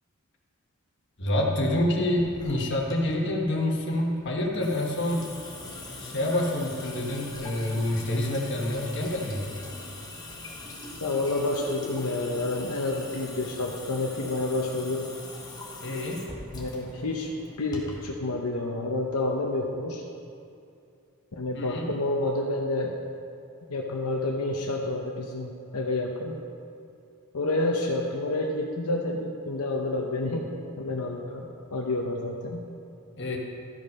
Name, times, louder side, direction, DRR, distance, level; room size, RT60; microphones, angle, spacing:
voice 1, 1.2-5.3 6.0-9.5 15.8-16.3 21.5-21.9 33.2-33.4, left 1 dB, 55° left, -1 dB, 1.4 m, -27 dB
Water tap faucet / Sink (filling or washing) / Drip, 2.2-18.1, left 2 dB, 20° left, 1.2 m, -42 dB
voice 2, 11.0-15.1 16.5-17.3 17.6-20.0 21.3-22.9 23.7-26.4 27.3-30.5 30.8-32.6, left 2 dB, 80° left, 0 dB, 0.8 m, -29 dB
13.5 x 5.2 x 5.4 m, 2.6 s
head